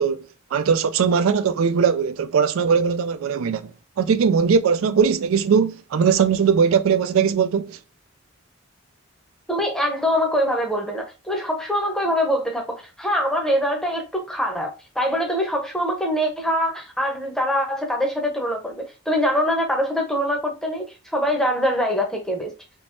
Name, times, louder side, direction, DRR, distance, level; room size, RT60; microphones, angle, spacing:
voice 1, 0.0-7.8, right 6 dB, 75° right, 0.3 m, -20 dB
voice 2, 9.5-20.9 21.1-22.5, equal, ahead, 0.7 m, -23 dB
3.6 x 2.9 x 2.6 m
head